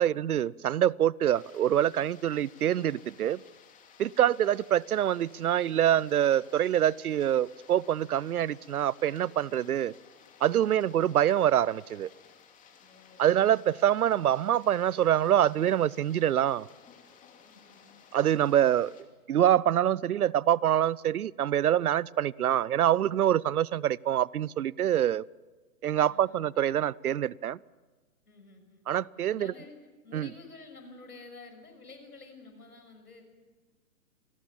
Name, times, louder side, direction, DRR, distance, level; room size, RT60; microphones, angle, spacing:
voice 1, 0.0-3.4 4.0-9.9 10.4-12.1 13.2-16.7 18.1-18.9 19.3-25.2 25.8-27.6 28.9-29.5 30.1-30.3, right 11 dB, 75° right, 0.7 m, -25 dB
sound 1, 1.3-19.0, left 7 dB, 15° left, 2.8 m, -57 dB
voice 2, 12.8-13.3 17.4-18.0 26.0-26.6 28.3-28.8 29.3-29.8 30.0-33.2, left 3 dB, 90° left, 6.3 m, -51 dB
27.0 x 20.0 x 7.4 m
hypercardioid pair, 130°, 44 cm